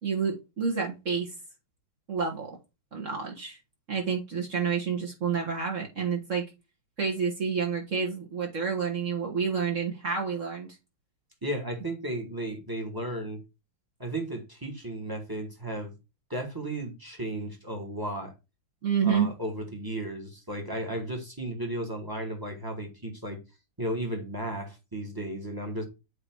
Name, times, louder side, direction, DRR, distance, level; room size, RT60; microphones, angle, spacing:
voice 1, 0.0-1.3 2.1-2.6 2.9-3.6 3.9-6.4 7.0-10.7 18.8-19.3, right 6 dB, 40° right, 1.6 m, -29 dB
voice 2, 11.4-13.4 14.0-15.9 16.3-18.3 19.0-23.4 23.8-25.8, right 1 dB, 10° right, 1.5 m, -34 dB
8.2 x 3.3 x 4.6 m
omnidirectional pair, 2.4 m